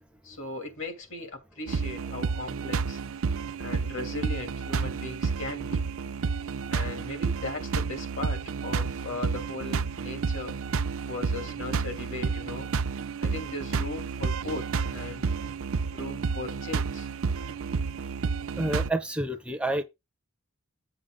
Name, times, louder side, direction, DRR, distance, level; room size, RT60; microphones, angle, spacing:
voice 1, 0.2-3.0 3.6-5.9 6.7-10.6 11.0-12.7 13.2-15.5 15.9-17.1, left 2 dB, 65° left, 2.6 m, -38 dB
sound 1, 1.7-18.9, right 5 dB, 70° right, 0.5 m, -30 dB
voice 2, 18.6-19.8, right 1 dB, 5° right, 0.6 m, -29 dB
7.8 x 6.7 x 3.8 m
head